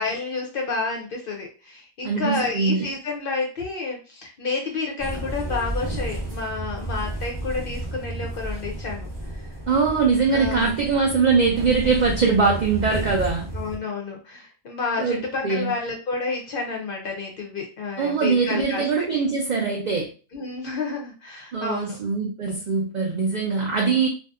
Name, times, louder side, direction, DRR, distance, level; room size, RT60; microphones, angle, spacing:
voice 1, 0.0-9.4 10.3-10.7 13.5-18.8 20.3-22.0, left 4 dB, 60° left, 1 dB, 0.6 m, -30 dB
voice 2, 2.0-2.8 9.7-13.5 15.0-15.7 18.0-20.1 21.5-24.1, right 5 dB, 65° right, 0 dB, 0.4 m, -22 dB
sound 1, 5.0-13.8, right 1 dB, 25° right, 0.6 m, -32 dB
2.6 x 2.3 x 2.3 m, 0.35 s
omnidirectional pair, 1.3 m